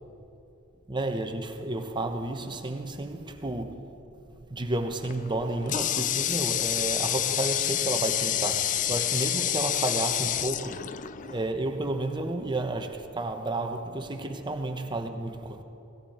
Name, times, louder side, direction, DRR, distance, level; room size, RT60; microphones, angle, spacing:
voice 1, 0.9-4.0 4.5-10.9 11.2-15.6, right 2 dB, 20° right, 1.0 m, -31 dB
Water tap faucet, 5.0-11.5, left 12 dB, 35° left, 0.3 m, -28 dB
18.5 x 16.0 x 4.4 m
head